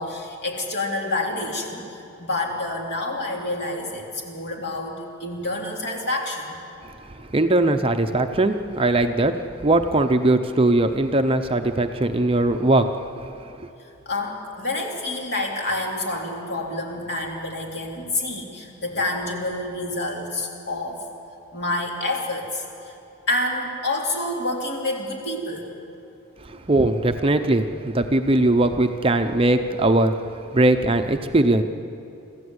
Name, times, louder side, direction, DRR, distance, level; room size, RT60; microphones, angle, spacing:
voice 1, 0.0-6.6 14.0-21.0 21.5-22.9 23.3-25.7, left 2 dB, 50° left, 0 dB, 3.4 m, -28 dB
voice 2, 7.2-12.9 26.4-30.2 30.5-31.6, right 2 dB, 25° right, 7 dB, 0.7 m, -20 dB
25.5 x 15.0 x 8.1 m, 2.8 s
head